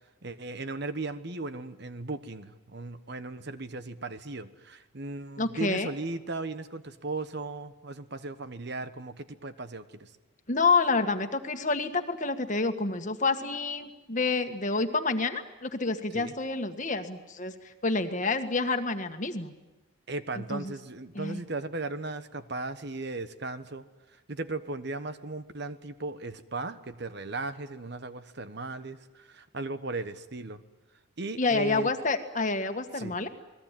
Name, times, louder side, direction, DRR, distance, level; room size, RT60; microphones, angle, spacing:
voice 1, 0.2-10.1 16.1-16.3 20.1-23.8 24.3-30.6 31.2-31.9 32.9-33.2, right 2 dB, 55° right, 12 dB, 1.2 m, -37 dB
voice 2, 5.4-5.9 10.5-19.5 20.5-20.7 21.1-21.4 31.4-33.3, left 3 dB, 35° left, 7 dB, 1.7 m, -28 dB
28.5 x 20.5 x 9.1 m, 1.1 s
head